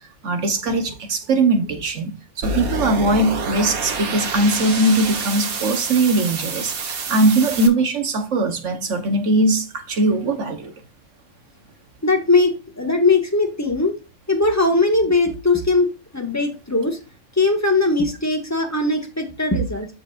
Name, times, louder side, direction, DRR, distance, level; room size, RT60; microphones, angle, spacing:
voice 1, 0.2-2.1 2.4-10.7, right 2 dB, 55° right, 1.5 m, -20 dB
sound 1, 2.4-7.7, right 3 dB, 75° right, 1.7 m, -27 dB
voice 2, 12.0-14.0 14.3-17.0 17.4-19.9, left 3 dB, 10° left, 1.7 m, -20 dB
13.0 x 4.6 x 2.6 m
omnidirectional pair, 1.5 m